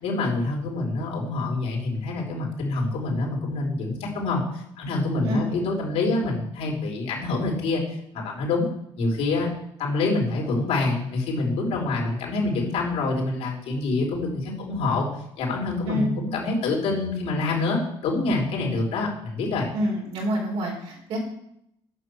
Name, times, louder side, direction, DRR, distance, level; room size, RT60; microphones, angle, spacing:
voice 1, 0.0-7.8 8.1-8.7 9.0-9.5 9.8-15.1 15.4-19.7, left 3 dB, 75° left, -1 dB, 3.7 m, -26 dB
voice 2, 19.7-21.2, equal, 70° right, 0 dB, 4.0 m, -27 dB
9.0 x 6.2 x 6.2 m, 0.76 s
cardioid pair, 120°, 11 cm